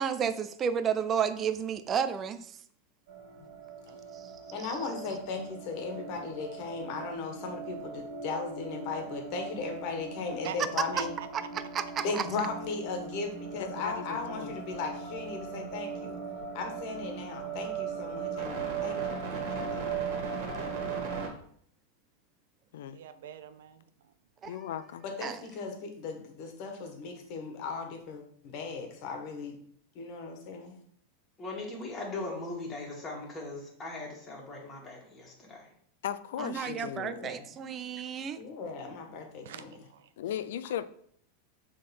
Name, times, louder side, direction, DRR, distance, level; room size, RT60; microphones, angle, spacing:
voice 1, 0.0-2.6 4.1-4.3 4.6-4.7 10.8-10.9 11.3-12.2 24.4-24.6 25.2-25.4 36.4-38.4, right 7 dB, 25° right, 11 dB, 0.4 m, -32 dB
sound 1, 3.1-21.3, right 6 dB, 55° right, 2.2 m, -38 dB
voice 2, 3.9-4.4 5.1-5.2 10.4-10.6 10.9-11.3 22.9-23.8 39.4-40.1, right 9 dB, 75° right, 11 dB, 0.7 m, -44 dB
voice 3, 4.5-11.1 12.0-16.2 16.5-19.9 25.0-29.6 30.0-30.8 37.0-37.5 38.4-39.7, left 4 dB, 45° left, 4 dB, 1.7 m, -37 dB
voice 4, 13.5-14.6 22.7-23.0 24.5-25.0 36.0-37.2 40.2-40.8, left 10 dB, 75° left, 14 dB, 0.5 m, -37 dB
voice 5, 31.4-35.7, left 2 dB, 15° left, -3 dB, 2.3 m, -39 dB
6.7 x 3.8 x 5.4 m, 0.63 s
supercardioid pair, 150°, 0 cm